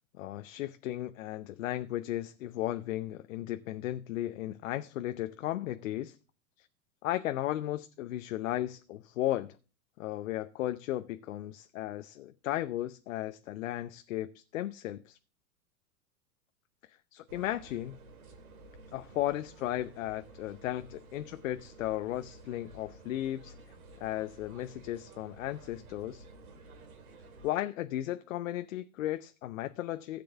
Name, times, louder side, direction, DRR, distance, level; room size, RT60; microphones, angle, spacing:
voice 1, 0.2-6.2 6.6-6.7 7.0-9.6 10.0-15.2 17.1-18.0 18.9-23.5 24.0-26.3 27.4-30.2, left 14 dB, 65° left, 0.8 m, -35 dB
sound 1, 17.3-27.5, right 2 dB, 75° right, 2.5 m, -53 dB
15.5 x 7.7 x 3.5 m
hypercardioid pair, 105°, 43 cm